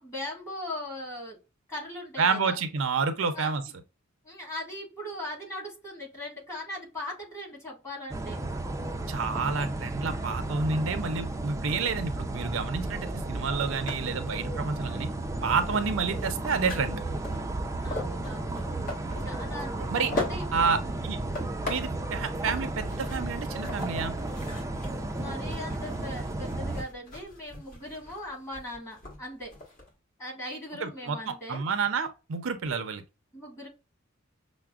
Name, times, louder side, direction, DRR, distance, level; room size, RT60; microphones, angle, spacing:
voice 1, 0.0-1.4 1.7-2.6 3.3-3.5 4.2-8.4 17.8-18.7 19.2-20.4 20.8-21.0 25.1-29.6 30.2-31.7 33.3-33.7, left 1 dB, 15° left, 1.7 m, -39 dB
voice 2, 2.2-3.6 9.1-15.1 15.4-17.0 19.9-20.1 20.5-21.2 21.7-24.1 30.8-33.0, right 5 dB, 70° right, 0.5 m, -29 dB
sound 1, 8.1-26.8, right 2 dB, 15° right, 0.4 m, -33 dB
sound 2, 13.9-29.9, left 2 dB, 40° left, 1.6 m, -41 dB
5.7 x 2.1 x 2.3 m
head